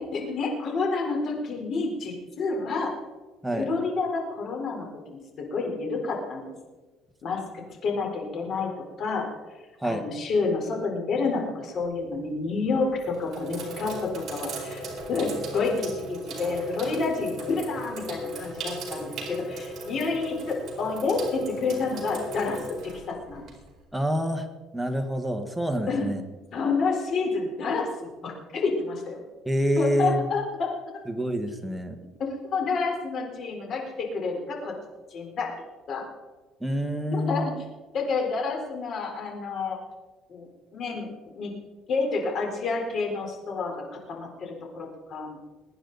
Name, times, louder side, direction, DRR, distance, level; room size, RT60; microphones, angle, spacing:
voice 1, 0.0-2.9 3.5-6.5 7.2-7.4 7.8-8.7 9.0-9.3 9.8-22.6 23.1-23.4 25.9-26.1 26.5-29.2 29.8-30.7 32.4-34.7 35.1-35.5 35.9-36.0 37.1-37.5 37.9-39.8 40.3-41.5 41.9-45.4, left 4 dB, 45° left, 1 dB, 4.0 m, -29 dB
Sink (filling or washing), 11.8-12.2 12.9-23.8, right 1 dB, 45° right, 4.7 m, -37 dB
voice 2, 23.9-24.5 24.7-26.2 29.4-30.2 31.1-32.0 36.6-37.5, equal, 5° right, 5 dB, 1.5 m, -27 dB
22.0 x 9.9 x 4.0 m, 1.2 s
cardioid pair, 135°, 0 cm